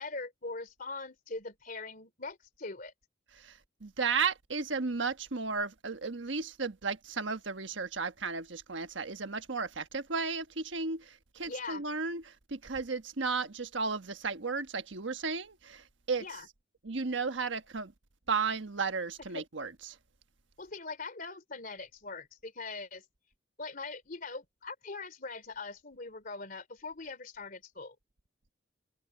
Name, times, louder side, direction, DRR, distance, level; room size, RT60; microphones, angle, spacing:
voice 1, 0.0-2.9 11.5-11.8 16.2-16.5 19.3-19.4 20.6-23.0 23.6-27.9, left 3 dB, 45° left, 3.2 m, -42 dB
voice 2, 3.4-16.2 16.8-17.9 18.3-20.0, right 4 dB, 75° right, 1.4 m, -34 dB
head